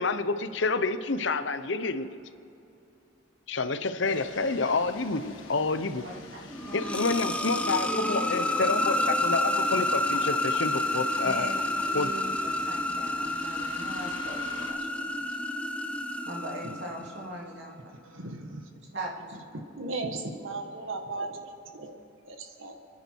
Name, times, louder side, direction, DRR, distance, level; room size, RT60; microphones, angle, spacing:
voice 1, 0.0-2.2 3.5-6.0 6.7-11.5 11.9-12.1, left 3 dB, 65° left, 10 dB, 0.8 m, -28 dB
sound 1, 4.0-14.7, left 3 dB, 80° left, 1.8 m, -46 dB
voice 2, 6.0-6.4 6.6-7.1 11.1-11.5 11.9-15.2 16.2-17.7 18.9-19.3, right 1 dB, 55° right, -2 dB, 3.0 m, -40 dB
sound 2, 6.5-17.3, left 1 dB, 5° left, 0.6 m, -29 dB
voice 3, 18.0-18.6 19.7-22.8, right 2 dB, 80° right, 5 dB, 1.5 m, -37 dB
29.5 x 10.0 x 4.6 m, 2.8 s
head